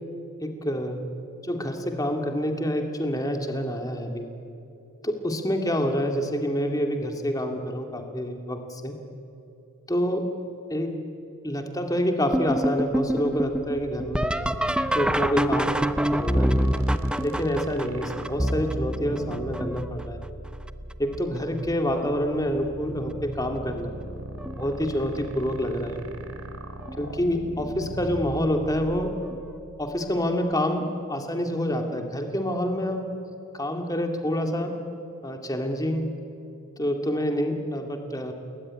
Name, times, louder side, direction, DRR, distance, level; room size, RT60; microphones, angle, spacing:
voice 1, 0.4-1.0 1.4-4.3 5.0-8.9 9.9-10.2 10.7-10.9 11.4-14.4 14.9-15.8 16.1-16.6 17.2-20.2 21.0-23.9 24.6-26.0 27.0-29.1 29.8-33.1 33.5-34.7 35.2-36.0 36.8-38.3, equal, 15° left, 4 dB, 2.4 m, -27 dB
sound 1, 12.3-20.0 20.7-21.2 21.7-22.3 23.6-23.7 24.4-24.7 26.9-27.0 29.3-29.4, right 1 dB, 5° right, 0.5 m, -26 dB
sound 2, 13.7-30.1, right 1 dB, 80° right, 2.6 m, -39 dB
29.0 x 20.5 x 9.9 m, 2.8 s
head